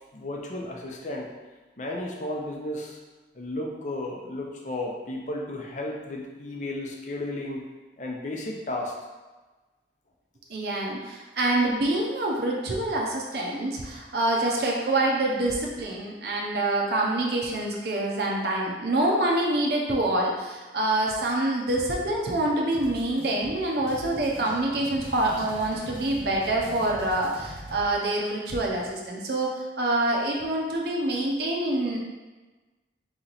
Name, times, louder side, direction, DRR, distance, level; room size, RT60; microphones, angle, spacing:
voice 1, 0.1-1.3 1.8-3.0 3.3-7.6 8.0-9.0, left 1 dB, 45° left, 0 dB, 0.6 m, -33 dB
voice 2, 10.5-32.0, right 1 dB, 60° right, -2 dB, 0.7 m, -26 dB
sound 1, 22.7-27.9, equal, 80° left, 1.2 m, -42 dB
4.2 x 3.0 x 3.9 m, 1.2 s
head